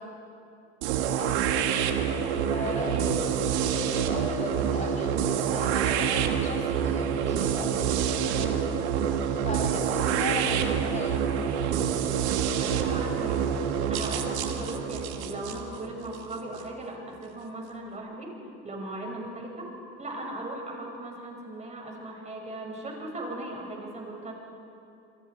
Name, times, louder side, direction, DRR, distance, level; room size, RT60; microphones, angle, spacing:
sound 1, 0.8-16.6, right 8 dB, 80° right, 1.9 m, -27 dB
voice 1, 0.9-1.7 2.5-3.1 3.6-8.7 9.4-11.5, left 2 dB, 20° left, 1 dB, 5.5 m, -37 dB
voice 2, 2.9-3.2 12.6-13.5 13.9-18.4 18.6-19.7 20.0-24.3, right 1 dB, 20° right, 1 dB, 6.1 m, -38 dB
28.5 x 22.5 x 4.7 m, 2.7 s
supercardioid pair, 100°, 33 cm